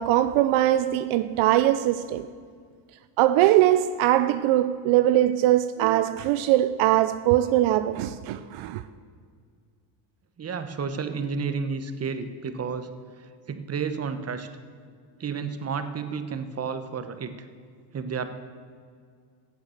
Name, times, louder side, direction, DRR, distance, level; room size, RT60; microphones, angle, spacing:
voice 1, 0.0-2.3 3.2-8.8, right 13 dB, 70° right, 0.6 m, -21 dB
voice 2, 10.4-12.9 13.5-14.5 15.2-17.4 17.9-18.3, right 5 dB, 30° right, 1.1 m, -31 dB
16.0 x 8.3 x 6.4 m
cardioid pair, 110°, 49 cm